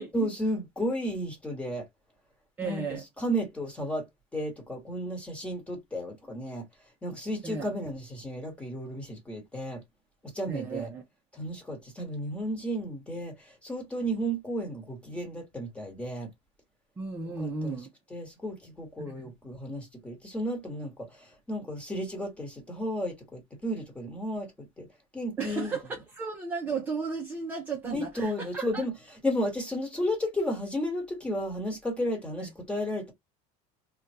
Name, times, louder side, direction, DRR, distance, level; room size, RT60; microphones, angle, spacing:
voice 1, 0.1-1.9 2.6-6.7 7.0-9.8 10.2-10.9 11.3-16.3 17.2-17.8 18.1-24.9 25.1-25.8 27.8-33.1, equal, 5° left, 1.1 m, -33 dB
voice 2, 2.6-3.0 7.4-7.7 10.5-11.0 17.0-17.9 19.2-19.3 25.4-28.8, right 4 dB, 10° right, 0.4 m, -34 dB
3.4 x 2.2 x 2.6 m
cardioid pair, 170°, 16 cm